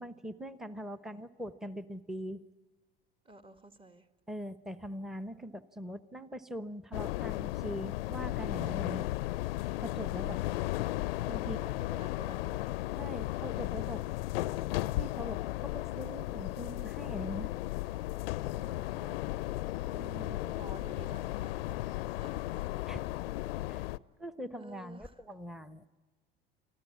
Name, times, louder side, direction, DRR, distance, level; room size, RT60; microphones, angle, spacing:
voice 1, 0.0-2.4 4.3-9.1 9.8-10.4 11.3-11.6 11.9-12.0 13.0-14.0 14.9-17.5 19.9-20.4 22.9-23.0 23.7-23.9 24.2-25.9, equal, ahead, 13 dB, 1.0 m, -42 dB
voice 2, 0.8-1.2 3.3-4.1 11.5-12.7 18.5-19.2 20.3-21.8 22.2-22.7 24.6-25.1, right 2 dB, 15° right, 10 dB, 1.6 m, -52 dB
sound 1, 6.9-24.0, left 17 dB, 75° left, 0.6 m, -35 dB
26.0 x 14.5 x 8.6 m, 1.4 s
hypercardioid pair, 75°, 30 cm